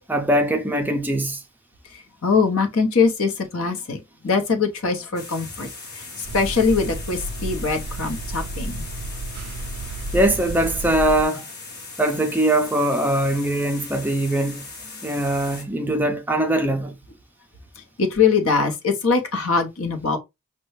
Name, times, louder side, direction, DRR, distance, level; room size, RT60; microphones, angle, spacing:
voice 1, 0.1-1.4 10.1-11.5 12.0-14.6 15.0-17.0, right 1 dB, 10° right, 0.4 m, -21 dB
voice 2, 1.8-5.7 5.9-8.9 15.0-15.1 17.8-20.2, left 5 dB, 70° left, 0.9 m, -22 dB
sound 1, 5.1-15.6, left 3 dB, 45° left, 1.2 m, -39 dB
sound 2, 6.2-11.2, right 2 dB, 90° right, 0.4 m, -32 dB
5.2 x 2.2 x 3.1 m
head